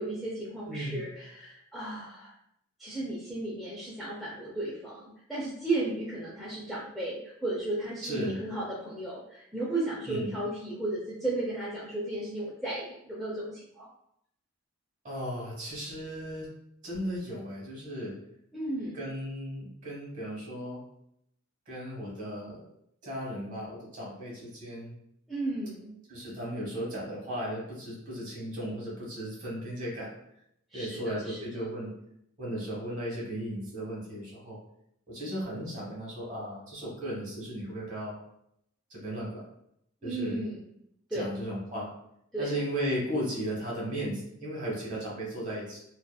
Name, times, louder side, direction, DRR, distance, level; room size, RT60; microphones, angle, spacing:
voice 1, 0.0-2.3 2.8-13.9 18.5-19.0 25.3-25.9 30.7-31.6 40.0-40.7 41.1-41.3 42.3-42.6, right 2 dB, ahead, -8 dB, 0.4 m, -34 dB
voice 2, 0.7-1.0 8.0-8.4 10.1-10.3 15.0-16.5 16.8-18.1 18.9-20.8 21.7-22.6 23.0-25.0 26.1-30.1 30.7-31.9 32.4-34.6 35.1-38.2 38.9-39.4 40.0-40.4 41.1-41.9 42.4-45.8, equal, 35° right, -4 dB, 1.0 m, -35 dB
2.7 x 2.4 x 2.2 m, 0.74 s
head